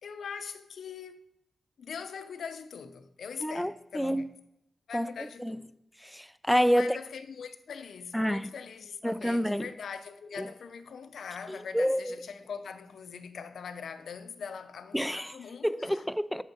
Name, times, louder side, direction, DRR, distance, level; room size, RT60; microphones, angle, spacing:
voice 1, 0.0-1.3 1.8-4.3 4.9-5.7 6.7-16.0, left 6 dB, 90° left, 0.6 m, -42 dB
voice 2, 3.4-4.2 4.9-5.6 6.0-7.0 8.1-8.5 9.0-9.7 10.4-10.5 11.5-12.2 14.9-15.3 15.6-16.4, equal, ahead, 0.3 m, -28 dB
6.9 x 6.4 x 5.4 m
wide cardioid pair, 125°, 0 cm